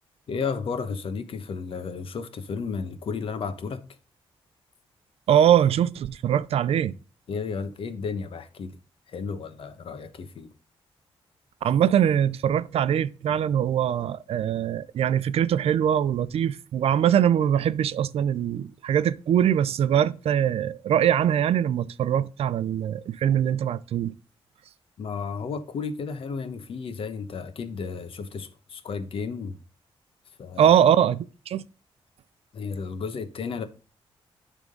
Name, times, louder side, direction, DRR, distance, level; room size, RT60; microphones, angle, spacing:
voice 1, 0.3-3.8 7.3-8.8 9.1-10.5 25.0-29.6 30.4-30.8 32.5-33.6, left 5 dB, 65° left, 1.1 m, -33 dB
voice 2, 5.3-6.9 11.6-24.1 30.6-31.6, right 9 dB, 80° right, 0.5 m, -22 dB
11.0 x 3.7 x 5.1 m
cardioid pair, 110°, 10 cm